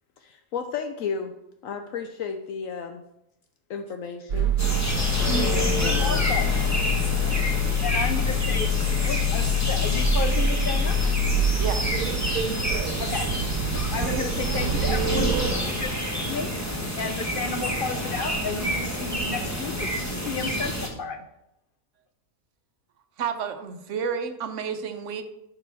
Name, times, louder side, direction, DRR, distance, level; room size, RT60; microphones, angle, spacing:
voice 1, 0.2-1.3 1.6-3.0 3.7-4.6 5.2-6.2, left 6 dB, 75° left, 6 dB, 1.0 m, -33 dB
sound 1, 4.3-15.5, left 1 dB, 85° right, 1.4 m, -25 dB
sound 2, 4.6-20.9, equal, 10° left, 1.1 m, -28 dB
voice 2, 5.8-6.6 7.8-8.7 9.0-11.0 13.0-13.3 13.9-16.5 17.0-19.9 20.3-21.2, left 4 dB, 60° left, 8 dB, 0.6 m, -32 dB
voice 3, 11.6-12.0 23.2-25.2, right 7 dB, 65° right, 9 dB, 1.1 m, -30 dB
11.0 x 5.9 x 3.4 m, 0.84 s
omnidirectional pair, 1.5 m